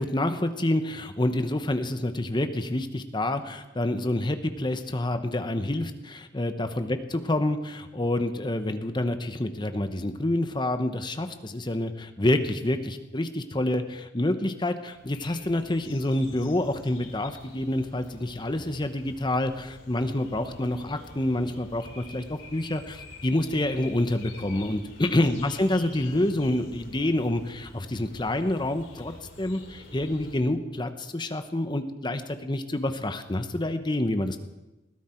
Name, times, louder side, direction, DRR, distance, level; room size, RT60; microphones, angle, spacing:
voice 1, 0.0-34.4, left 1 dB, 25° left, 8 dB, 1.0 m, -28 dB
sound 1, 14.9-30.4, left 2 dB, 90° left, 4.5 m, -47 dB
21.0 x 14.5 x 4.5 m, 1.0 s
head